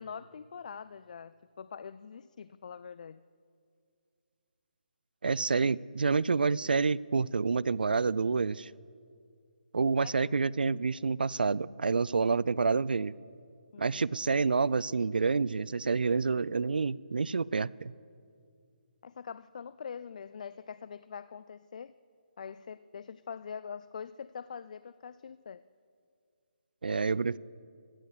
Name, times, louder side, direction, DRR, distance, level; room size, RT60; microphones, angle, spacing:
voice 1, 0.0-3.2 10.0-10.3 13.7-14.0 19.0-21.9 22.4-25.6, left 6 dB, 50° left, 16 dB, 0.3 m, -44 dB
voice 2, 5.2-8.7 9.7-13.1 13.8-17.9 26.8-27.4, right 4 dB, 75° right, 22 dB, 0.3 m, -28 dB
15.0 x 8.9 x 6.6 m, 2.3 s
figure-of-eight pair, 150°, 5 cm